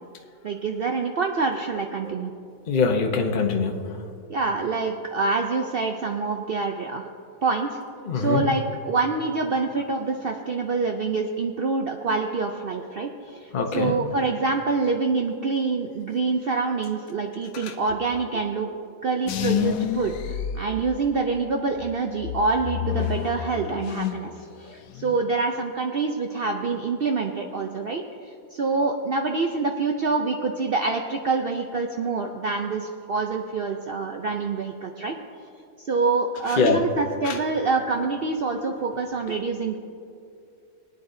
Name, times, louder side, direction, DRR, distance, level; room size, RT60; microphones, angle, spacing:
voice 1, 0.4-2.3 4.3-7.1 7.4-7.8 8.1-18.7 19.0-35.1 35.8-39.8, right 4 dB, 75° right, 3 dB, 0.5 m, -26 dB
voice 2, 2.7-3.7 8.0-8.4 13.5-13.9 17.6-17.7 36.6-36.8 37.2-37.4, left 5 dB, 40° left, 3 dB, 0.8 m, -23 dB
sound 1, 19.3-21.3 21.8-24.3 24.6-25.2, left 11 dB, 70° left, 0.9 m, -29 dB
20.5 x 9.6 x 2.7 m, 2.5 s
omnidirectional pair, 1.7 m